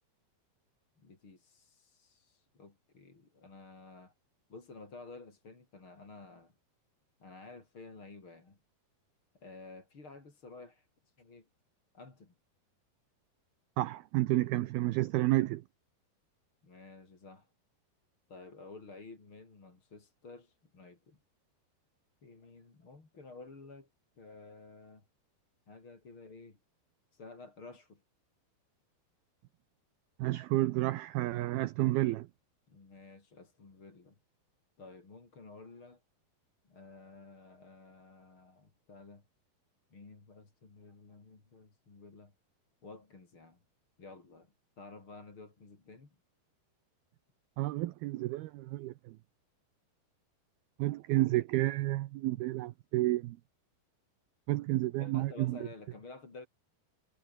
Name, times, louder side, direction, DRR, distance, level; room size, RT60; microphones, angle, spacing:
voice 1, 1.0-4.1 4.5-6.5 7.2-8.6 9.4-11.5 11.9-12.3 16.6-17.5 18.3-21.2 22.2-23.9 24.2-25.0 25.7-26.6 27.1-28.0 32.7-34.1 34.8-36.0 36.7-39.2 39.9-42.3 42.8-43.6 44.0-46.2 55.0-56.5, left 3 dB, 30° left, 5.2 m, -52 dB
voice 2, 13.8-15.6 30.2-32.3 47.6-49.2 50.8-53.4 54.5-55.6, right 17 dB, 75° right, 2.4 m, -30 dB
omnidirectional pair, 5.1 m